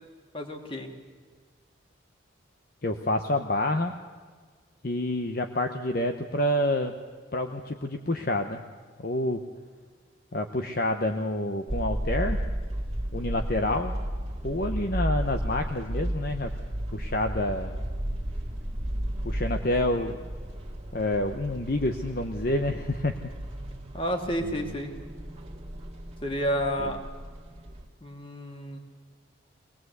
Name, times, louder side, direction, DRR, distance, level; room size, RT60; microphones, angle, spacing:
voice 1, 0.3-0.9 23.9-24.9 26.2-27.0 28.0-28.8, equal, 25° left, 3 dB, 2.4 m, -30 dB
voice 2, 2.8-3.9 4.8-6.9 7.3-8.6 9.0-9.4 10.3-12.4 13.1-14.0 14.4-16.5 16.9-17.8 19.2-20.2 20.9-23.2, left 1 dB, 50° left, 6 dB, 1.0 m, -28 dB
sound 1, 11.7-27.9, equal, 35° right, 2.0 m, -34 dB
23.0 x 18.5 x 8.1 m, 1.5 s
head